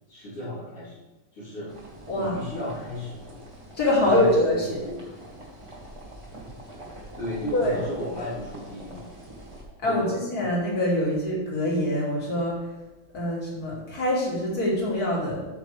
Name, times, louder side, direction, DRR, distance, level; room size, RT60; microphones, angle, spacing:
voice 1, 0.1-1.0 1.3-1.7 2.1-3.2 4.0-5.0 7.2-9.1 9.8-10.2, left 1 dB, 80° left, -12 dB, 4.4 m, -34 dB
sound 1, 1.7-9.6, right 1 dB, 15° right, 1.8 m, -44 dB
voice 2, 2.1-2.4 3.8-4.9 7.5-7.8 9.8-12.6 13.1-15.5, left 1 dB, 40° left, -5 dB, 3.1 m, -24 dB
13.5 x 6.1 x 3.4 m, 1.1 s
omnidirectional pair, 2.4 m